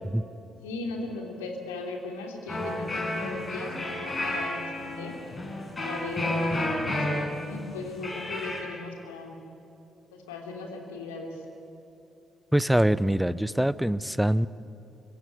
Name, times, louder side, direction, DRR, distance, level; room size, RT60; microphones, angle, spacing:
voice 1, 0.6-5.2 5.8-6.5 6.9-7.1 7.4-9.4 10.1-11.4, left 3 dB, 75° left, 2 dB, 3.1 m, -38 dB
sound 1, 2.5-8.6, left 1 dB, 30° left, 6.2 m, -31 dB
voice 2, 12.5-14.5, right 1 dB, 5° right, 18 dB, 0.8 m, -24 dB
24.5 x 23.0 x 9.9 m, 2.8 s
figure-of-eight pair, 40°, 0 cm